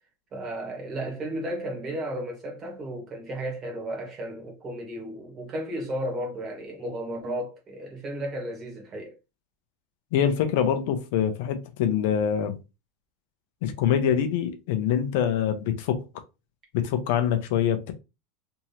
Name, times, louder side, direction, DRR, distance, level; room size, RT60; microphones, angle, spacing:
voice 1, 0.3-9.1, right 1 dB, 25° right, 1.5 m, -34 dB
voice 2, 10.1-12.6 13.6-16.0 16.7-17.9, left 9 dB, 65° left, 0.7 m, -24 dB
3.5 x 3.0 x 2.9 m
supercardioid pair, 150°, 0 cm